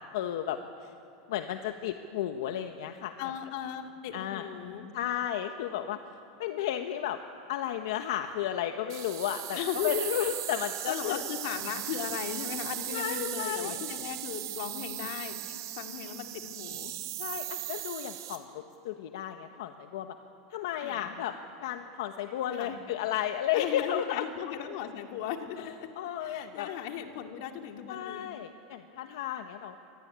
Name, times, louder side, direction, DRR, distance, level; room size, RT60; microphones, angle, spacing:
voice 1, 0.1-0.9 1.3-3.1 4.1-4.5 4.9-6.0 6.4-7.2 7.5-9.6 9.8-11.2 12.9-13.8 17.2-20.2 20.5-21.4 21.6-24.3 25.6-25.7 26.0-26.7 27.9-29.8, left 11 dB, 70° left, 7 dB, 1.3 m, -33 dB
voice 2, 3.2-4.9 9.5-10.1 10.9-16.9 20.8-21.1 22.5-22.8 23.5-25.9 26.2-28.3, left 9 dB, 55° left, 4 dB, 2.4 m, -37 dB
sound 1, 8.9-18.4, right 13 dB, 80° right, 3.3 m, -38 dB
26.0 x 21.5 x 9.7 m, 2.9 s
supercardioid pair, 170°, 2 cm